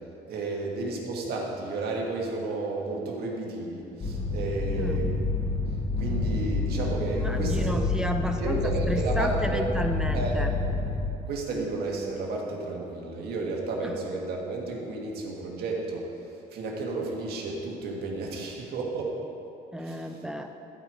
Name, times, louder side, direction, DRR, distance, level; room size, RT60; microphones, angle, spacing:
voice 1, 0.3-5.3 6.0-7.8 8.4-9.7 10.1-10.4 11.3-16.1 16.5-19.1 19.8-20.1, right 3 dB, 70° right, -1 dB, 1.7 m, -32 dB
sound 1, 4.0-11.1, left 3 dB, 40° left, 2.3 m, -28 dB
voice 2, 4.8-5.1 7.0-10.5 13.8-14.0 19.7-20.5, equal, 5° right, 5 dB, 0.5 m, -32 dB
14.0 x 4.6 x 5.0 m, 2.8 s
cardioid pair, 110°, 17 cm